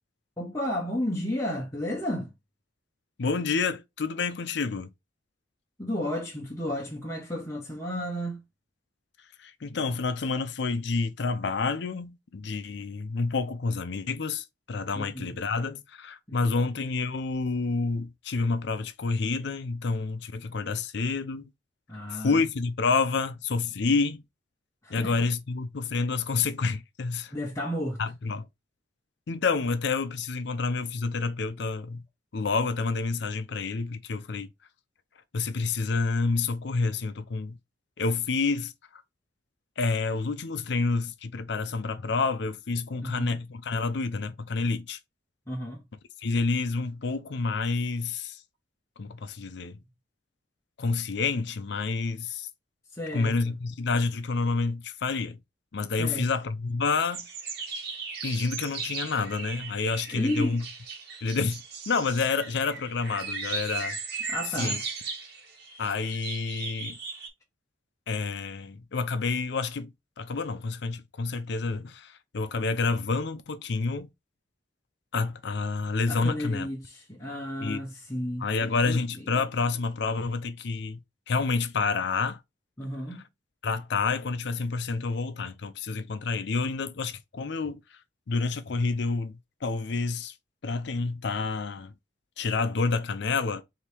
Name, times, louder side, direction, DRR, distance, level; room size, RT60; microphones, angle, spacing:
voice 1, 0.4-2.3 5.8-8.4 9.7-9.8 14.9-15.3 16.3-16.6 21.9-22.4 24.8-25.1 27.3-28.0 43.0-43.4 45.5-45.8 52.9-53.5 56.0-56.3 60.1-60.6 64.3-64.8 76.1-78.5 78.9-79.0 82.8-83.2, left 1 dB, 15° left, 0.9 m, -32 dB
voice 2, 3.2-4.9 9.4-21.5 22.1-24.2 24.9-27.3 28.0-28.5 29.3-32.0 32.3-34.5 35.3-37.6 38.0-39.0 39.8-45.0 46.2-48.4 49.0-49.8 50.8-52.5 53.1-55.4 55.7-57.3 58.2-60.6 61.2-64.0 64.6-64.8 65.8-67.0 68.1-74.1 75.1-76.7 77.6-77.8 78.4-81.0 81.3-82.4 83.6-87.8 88.3-90.3 90.6-91.9 92.4-93.6, left 4 dB, 60° left, 0.5 m, -29 dB
sound 1, 57.0-67.3, right 5 dB, 55° right, 1.3 m, -37 dB
4.4 x 2.8 x 3.3 m
head